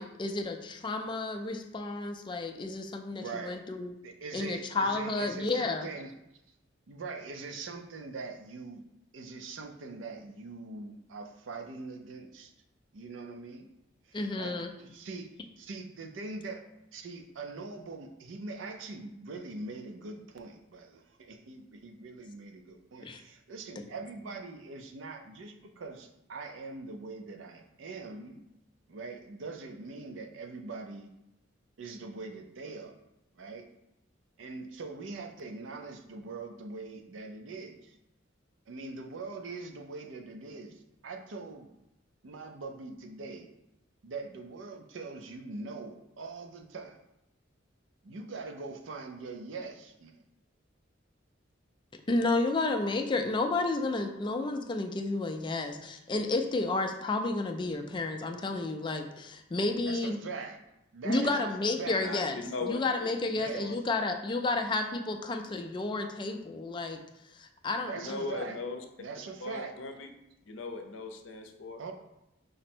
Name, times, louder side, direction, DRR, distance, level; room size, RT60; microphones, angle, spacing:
voice 1, 0.0-3.9 4.3-5.9 14.1-14.7 23.0-23.2 52.1-60.2 61.0-62.4 62.6-67.0 67.3-68.2, left 2 dB, 25° left, 5 dB, 0.4 m, -31 dB
voice 2, 3.1-3.6 4.0-6.1 6.9-8.9 9.1-12.5 12.9-13.7 14.1-15.3 15.6-28.4 28.9-31.1 31.8-32.9 33.4-33.6 34.4-38.0 38.7-41.7 42.2-43.5 44.0-47.0 48.0-50.2 59.7-60.6 60.9-61.5 61.8-62.1 63.3-63.7 67.8-68.6 69.0-69.7 71.8-71.9, right 3 dB, 80° right, 5 dB, 0.5 m, -42 dB
voice 3, 62.0-63.1 63.6-63.8 67.9-68.8 69.4-70.1 70.5-71.8, left 3 dB, 90° left, 5 dB, 0.5 m, -38 dB
5.0 x 2.1 x 4.3 m, 0.88 s
head